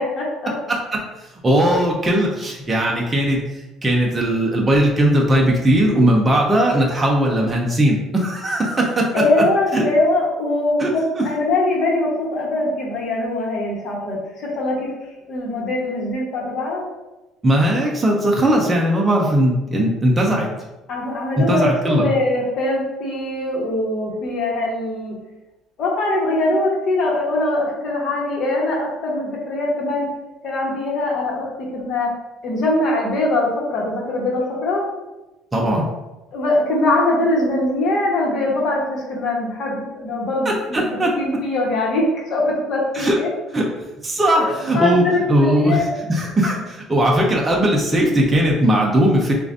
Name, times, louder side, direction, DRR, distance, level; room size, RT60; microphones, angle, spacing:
voice 1, 0.0-0.5 9.1-14.9 15.3-16.8 20.9-25.2 25.8-30.1 30.4-32.1 32.4-34.9 36.3-40.8 41.2-42.0 42.3-43.3 44.3-45.8, left 2 dB, 45° left, -2 dB, 1.2 m, -22 dB
voice 2, 0.7-9.1 9.4-9.5 9.7-9.8 10.8-11.2 17.4-20.5 21.4-22.1 35.5-35.9 40.4-41.1 42.9-43.2 43.5-43.6 44.0-49.3, right 1 dB, 15° right, -2 dB, 0.6 m, -18 dB
6.6 x 2.5 x 2.6 m, 1.0 s
cardioid pair, 150°, 0 cm